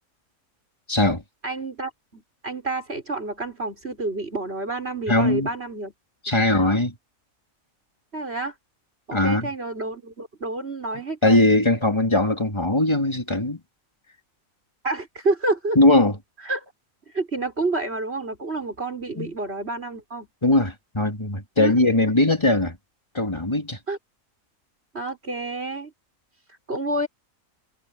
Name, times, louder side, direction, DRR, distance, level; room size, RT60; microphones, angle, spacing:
voice 1, 0.9-1.2 5.1-5.5 6.2-7.0 9.1-9.5 11.2-13.6 15.7-16.2 19.2-19.3 20.4-22.8 23.1-23.8, left 2 dB, 20° left, 3.3 m, -20 dB
voice 2, 1.4-5.9 8.1-8.5 9.1-11.5 14.8-15.8 16.4-16.6 17.1-20.3 21.6-22.0 23.9-24.0 24.9-25.9 26.7-27.1, right 2 dB, 45° right, 6.2 m, -29 dB
omnidirectional pair, 1.4 m